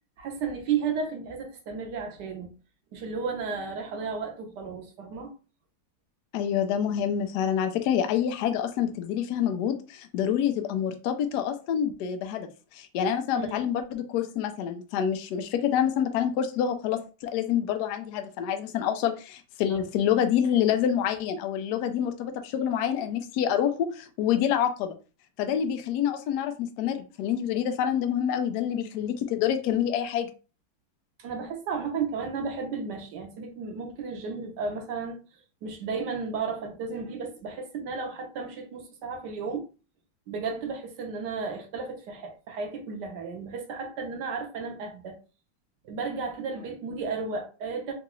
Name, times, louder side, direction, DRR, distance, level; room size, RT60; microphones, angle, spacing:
voice 1, 0.2-2.5 2.9-5.3 13.4-13.6 19.7-19.8 31.2-35.2 35.6-39.7 40.3-45.1 45.8-47.9, right 5 dB, 65° right, 1.1 m, -33 dB
voice 2, 6.3-25.0 25.4-30.3, left 9 dB, 90° left, 0.8 m, -27 dB
3.9 x 2.3 x 3.0 m
omnidirectional pair, 2.3 m